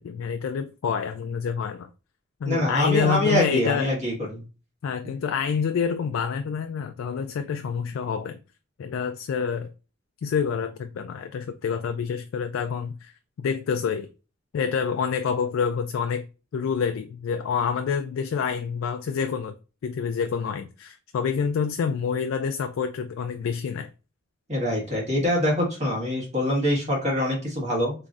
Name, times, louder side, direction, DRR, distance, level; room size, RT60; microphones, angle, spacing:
voice 1, 0.0-1.9 2.4-4.0 4.8-8.4 8.8-9.7 10.2-13.1 13.4-14.1 14.5-16.2 16.5-19.5 19.8-23.9, left 6 dB, 80° left, 0.3 m, -27 dB
voice 2, 2.4-4.4 24.5-27.9, left 1 dB, 35° right, 1.5 m, -24 dB
3.8 x 3.0 x 2.4 m
head